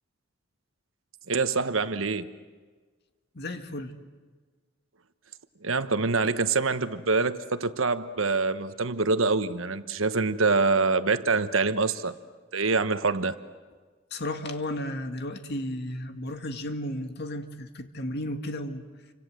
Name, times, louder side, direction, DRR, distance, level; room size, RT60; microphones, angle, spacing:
voice 1, 1.3-2.3 5.6-12.1 12.5-13.4, right 4 dB, 85° right, 11 dB, 1.2 m, -25 dB
voice 2, 3.3-3.9 14.1-18.8, left 1 dB, 55° left, 7 dB, 2.1 m, -34 dB
29.0 x 25.5 x 7.8 m, 1.4 s
head